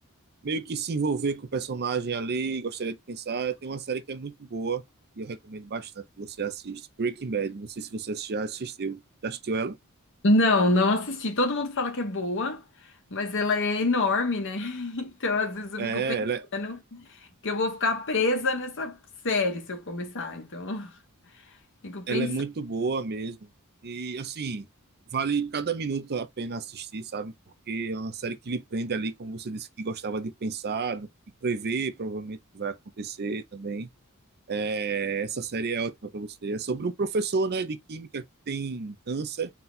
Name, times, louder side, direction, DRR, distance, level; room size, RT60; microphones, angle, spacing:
voice 1, 0.4-4.8 5.2-9.8 15.8-16.5 22.1-23.5 23.8-24.7 25.1-27.3 27.7-31.1 31.4-33.9 34.5-39.5, right 4 dB, 50° right, 0.6 m, -31 dB
voice 2, 10.2-12.6 13.1-16.2 16.5-17.1 17.4-19.0 19.2-21.0 21.8-22.3, left 2 dB, 60° left, 1.2 m, -26 dB
4.3 x 2.3 x 3.9 m
head